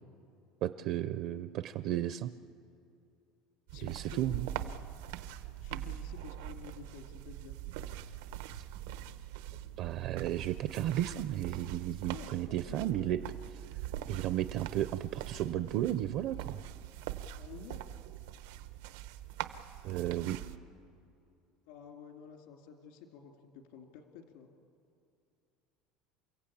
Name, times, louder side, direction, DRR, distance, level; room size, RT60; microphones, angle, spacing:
voice 1, 0.6-2.3 3.8-4.5 8.5-8.6 9.8-13.2 14.1-16.6 19.8-20.4, right 12 dB, 45° right, 12 dB, 0.5 m, -34 dB
voice 2, 3.7-4.9 5.6-7.5 12.1-13.2 17.3-17.8 21.7-24.5, left 7 dB, 75° left, 4 dB, 2.4 m, -51 dB
sound 1, 3.7-20.6, right 12 dB, 90° right, 0.9 m, -43 dB
29.0 x 15.5 x 8.6 m, 2.6 s
cardioid pair, 175°, 0 cm